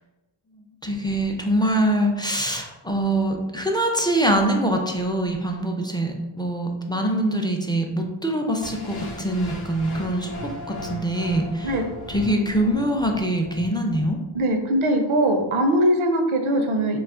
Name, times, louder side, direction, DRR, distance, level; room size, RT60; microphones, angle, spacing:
voice 1, 0.8-10.3 10.7-11.7 12.1-14.2, right 1 dB, 10° left, 2 dB, 0.3 m, -24 dB
sound 1, 8.6-14.6, left 1 dB, 50° left, 0.6 m, -37 dB
voice 2, 14.3-17.0, right 1 dB, 80° right, 5 dB, 0.6 m, -21 dB
2.4 x 2.3 x 3.5 m, 1.1 s
wide cardioid pair, 45°, 49 cm